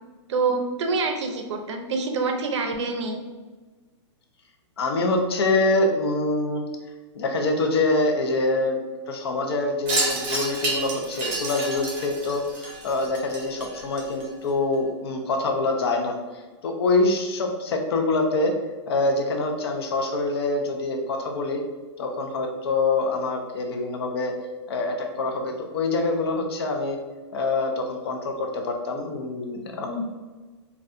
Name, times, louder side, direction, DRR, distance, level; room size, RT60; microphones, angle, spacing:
voice 1, 0.3-3.2, right 4 dB, 70° right, 4 dB, 0.6 m, -26 dB
voice 2, 4.8-6.6 7.1-8.8 9.1-16.2 16.6-18.5 18.9-21.6 22.0-24.3 24.7-27.0 27.3-30.0, left 2 dB, 55° left, 3 dB, 0.6 m, -25 dB
Wind chime, 9.9-14.5, right 2 dB, 25° right, 0.6 m, -30 dB
4.0 x 2.3 x 2.5 m, 1.3 s
supercardioid pair, 170°, 15 cm